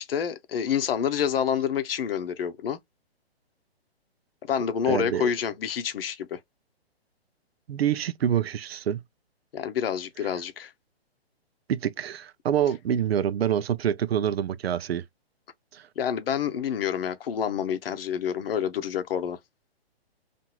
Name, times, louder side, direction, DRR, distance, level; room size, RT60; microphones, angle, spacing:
voice 1, 0.0-2.8 4.4-6.4 9.5-10.7 16.0-19.4, left 8 dB, 60° left, 0.7 m, -28 dB
voice 2, 4.9-5.3 7.7-9.0 11.7-15.0 15.7-15.8, right 9 dB, 70° right, 0.5 m, -26 dB
2.8 x 2.6 x 2.3 m
hypercardioid pair, 135°, 32 cm